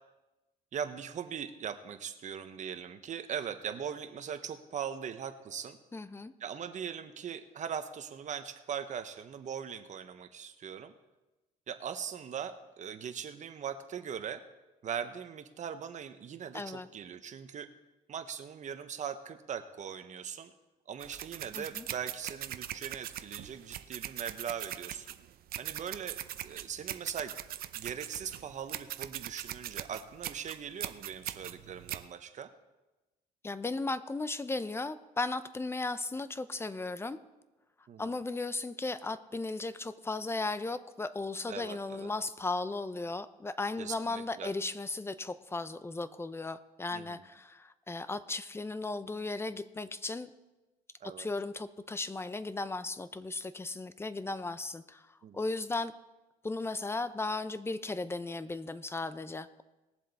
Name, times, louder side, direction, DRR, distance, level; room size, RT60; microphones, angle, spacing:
voice 1, 0.7-5.8 6.4-10.9 11.7-14.4 14.8-17.7 18.1-20.5 20.9-25.1 25.6-27.3 27.7-32.5 37.9-38.0 41.5-42.1 43.8-44.5 46.9-47.2 51.0-51.3 55.2-55.4, right 8 dB, 45° right, 9 dB, 1.0 m, -40 dB
voice 2, 5.9-6.3 16.5-16.9 21.5-21.9 33.4-37.2 38.0-50.3 51.2-55.9 56.4-59.6, left 3 dB, 15° left, 13 dB, 0.6 m, -36 dB
sound 1, 21.0-32.0, right 12 dB, 60° right, 0.6 m, -41 dB
20.0 x 7.5 x 4.1 m, 1.1 s
cardioid pair, 110°, 17 cm